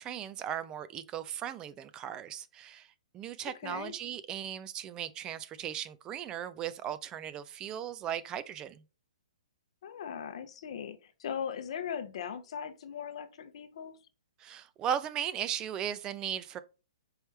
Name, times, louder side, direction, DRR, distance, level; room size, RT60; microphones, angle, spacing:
voice 1, 0.0-2.9 3.1-8.8 14.4-16.6, right 9 dB, 20° right, 0.4 m, -37 dB
voice 2, 3.4-3.9 9.8-14.0, left 8 dB, 55° left, 0.7 m, -39 dB
4.7 x 3.2 x 3.1 m
hypercardioid pair, 140°, 4 cm